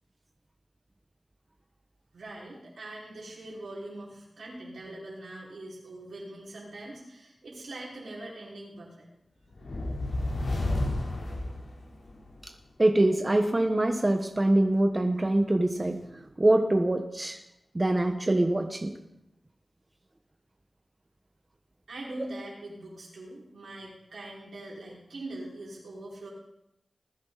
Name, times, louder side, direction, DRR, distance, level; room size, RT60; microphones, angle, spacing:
voice 1, 2.1-9.1 9.4-9.5 21.9-26.3, right 1 dB, 85° right, -4 dB, 5.4 m, -42 dB
sound 1, 9.5-12.3, left 2 dB, 80° left, 3.8 m, -31 dB
voice 2, 12.8-16.0 16.4-17.4 17.7-19.0, right 1 dB, 35° right, 5 dB, 1.3 m, -24 dB
20.0 x 10.5 x 4.2 m, 0.86 s
cardioid pair, 40°, 0 cm